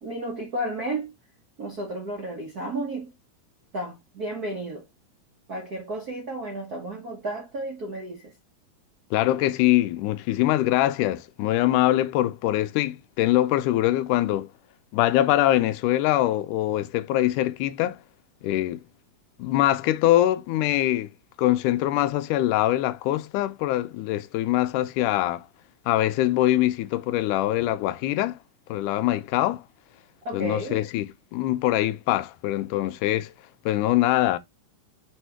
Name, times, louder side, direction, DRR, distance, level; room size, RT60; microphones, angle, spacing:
voice 1, 0.0-1.1 1.6-3.1 3.7-4.9 5.5-8.3 30.2-30.8, right 1 dB, 60° right, 0.9 m, -32 dB
voice 2, 9.1-14.5 14.9-18.0 18.4-18.8 19.4-21.1 21.4-25.5 25.9-28.4 28.7-29.6 30.3-31.1 31.3-33.3 33.7-34.4, left 14 dB, 80° left, 2.1 m, -23 dB
4.9 x 4.5 x 4.4 m
omnidirectional pair, 3.7 m